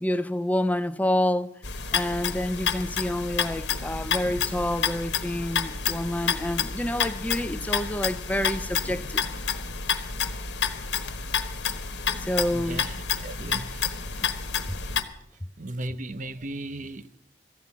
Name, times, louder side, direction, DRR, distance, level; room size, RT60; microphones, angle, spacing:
voice 1, 0.0-1.6 1.9-9.2 12.2-12.8 14.2-14.3 14.7-14.8, left 1 dB, 10° left, 0.5 m, -28 dB
sound 1, 1.6-15.0, left 6 dB, 80° left, 1.3 m, -29 dB
voice 2, 12.5-12.9 13.2-13.9 15.6-17.2, right 1 dB, 50° right, 0.8 m, -36 dB
14.5 x 9.2 x 8.4 m
head